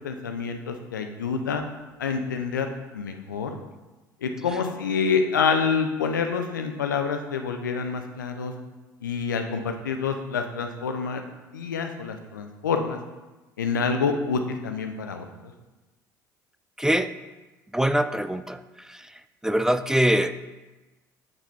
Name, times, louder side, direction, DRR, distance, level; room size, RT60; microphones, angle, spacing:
voice 1, 0.0-1.6 2.0-2.7 2.9-3.5 4.2-8.5 9.0-11.2 11.5-13.0 13.6-15.2, left 5 dB, 80° left, 6 dB, 0.6 m, -27 dB
voice 2, 16.8-17.1 17.7-18.6 18.9-19.0 19.4-20.5, right 1 dB, 5° right, 11 dB, 0.3 m, -23 dB
7.0 x 6.7 x 3.4 m, 1.2 s
figure-of-eight pair, 60°, 10 cm